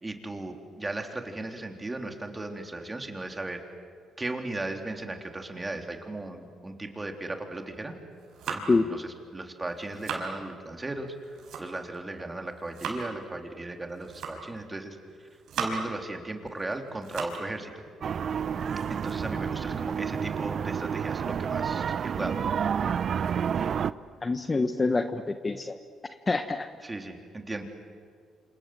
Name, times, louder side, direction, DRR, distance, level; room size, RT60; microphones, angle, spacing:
voice 1, 0.0-3.6 4.2-7.9 8.5-15.3 15.6-17.7 18.9-22.7 26.8-27.6, right 2 dB, 20° right, 4 dB, 3.6 m, -36 dB
sound 1, 8.0-8.9 9.6-10.3 11.1-12.0 12.4-13.1 13.9-14.6 15.1-16.0 16.5-17.5 17.9-18.0 18.4-20.1, right 5 dB, 75° right, 5.2 m, -38 dB
sound 2, 18.0-23.9, right 7 dB, 55° right, 0.7 m, -29 dB
voice 2, 24.2-25.8 26.3-26.7, left 3 dB, 25° left, 8 dB, 1.2 m, -26 dB
28.0 x 27.5 x 7.8 m, 2.1 s
cardioid pair, 90°, 0 cm